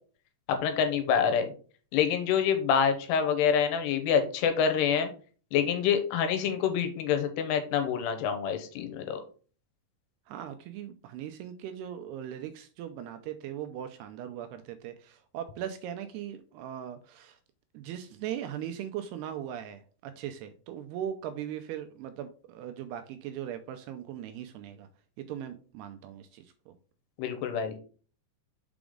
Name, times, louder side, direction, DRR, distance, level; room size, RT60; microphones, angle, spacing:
voice 1, 0.5-1.5 1.9-5.1 5.5-9.2 27.2-27.8, left 7 dB, 80° left, 7 dB, 2.9 m, -26 dB
voice 2, 10.3-17.4 17.7-24.9 25.2-26.7, right 10 dB, 85° right, 8 dB, 2.4 m, -39 dB
6.0 x 5.0 x 3.7 m, 0.39 s
omnidirectional pair, 5.0 m